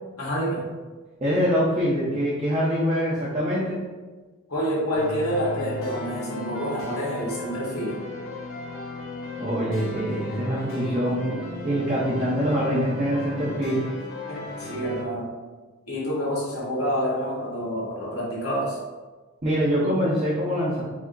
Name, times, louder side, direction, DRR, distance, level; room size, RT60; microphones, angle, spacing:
voice 1, 0.2-0.6 4.5-8.0 14.3-15.3 15.9-18.8, equal, 80° left, -6 dB, 1.5 m, -28 dB
voice 2, 1.2-3.8 9.4-11.4 11.6-13.9 19.4-20.8, equal, 30° right, -7 dB, 0.7 m, -24 dB
sound 1, 4.9-15.0, left 2 dB, 60° left, 0.8 m, -36 dB
4.9 x 2.1 x 3.8 m, 1.3 s
head